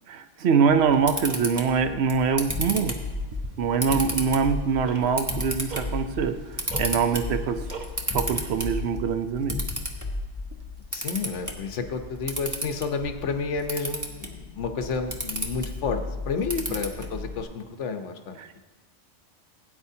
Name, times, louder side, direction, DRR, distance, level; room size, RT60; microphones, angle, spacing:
voice 1, 0.1-3.0 3.6-6.4 6.8-7.6 8.1-9.6 18.4-18.6, right 6 dB, 65° right, 8 dB, 0.9 m, -24 dB
Camera, 0.7-17.4, equal, 15° right, 1.0 m, -35 dB
sound 1, 2.5-10.8, left 2 dB, 20° left, 0.5 m, -34 dB
Tick-tock, 3.0-8.6, right 4 dB, 45° right, 0.9 m, -44 dB
voice 2, 10.9-16.0 16.3-18.6, left 5 dB, 80° left, 6 dB, 1.2 m, -30 dB
17.0 x 8.9 x 2.8 m, 1.2 s
omnidirectional pair, 1.2 m